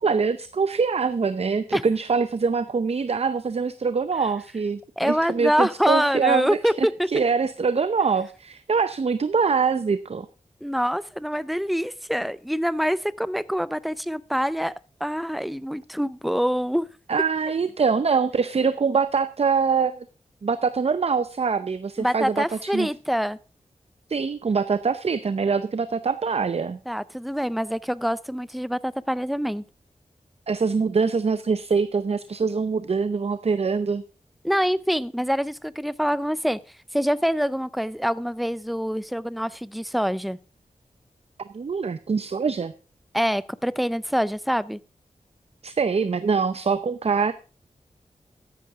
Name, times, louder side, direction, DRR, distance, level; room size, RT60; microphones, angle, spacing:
voice 1, 0.0-10.3 17.1-20.1 20.4-22.9 24.1-26.8 30.5-34.0 41.5-42.7 45.6-47.3, right 5 dB, 55° right, 13 dB, 0.7 m, -24 dB
voice 2, 5.0-7.1 10.6-14.7 15.0-16.9 22.0-23.4 26.9-29.6 34.4-36.6 36.9-40.4 43.1-44.8, equal, ahead, 18 dB, 0.6 m, -25 dB
14.0 x 10.5 x 3.6 m, 0.35 s
wide cardioid pair, 70°, 13 cm